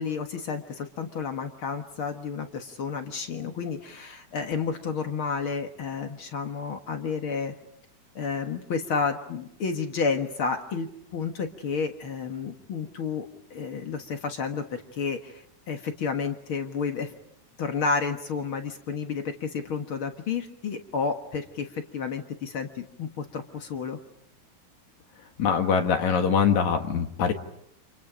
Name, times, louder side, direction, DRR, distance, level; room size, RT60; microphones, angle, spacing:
voice 1, 0.0-7.5 8.2-17.1 17.6-24.0, left 5 dB, 50° left, 5 dB, 2.0 m, -31 dB
voice 2, 25.4-27.3, left 6 dB, 65° left, 5 dB, 3.0 m, -23 dB
29.5 x 27.5 x 5.1 m, 0.71 s
omnidirectional pair, 3.7 m